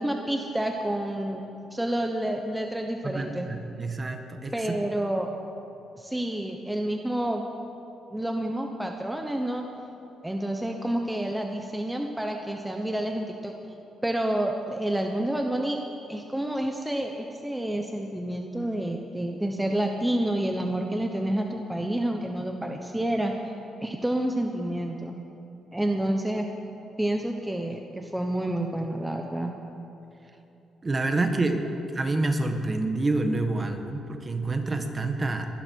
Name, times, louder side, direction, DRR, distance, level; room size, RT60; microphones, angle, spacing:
voice 1, 0.0-1.4 1.7-3.5 4.5-5.3 6.0-7.4 8.1-9.6 10.2-13.5 14.0-15.8 16.1-23.3 23.8-25.2 25.7-26.5 27.0-29.5, right 1 dB, 5° right, 3 dB, 1.1 m, -29 dB
voice 2, 3.0-4.8 30.8-31.6 31.9-35.5, right 2 dB, 30° right, 6 dB, 1.5 m, -27 dB
22.0 x 11.5 x 4.7 m, 2.8 s
cardioid pair, 90°, 0 cm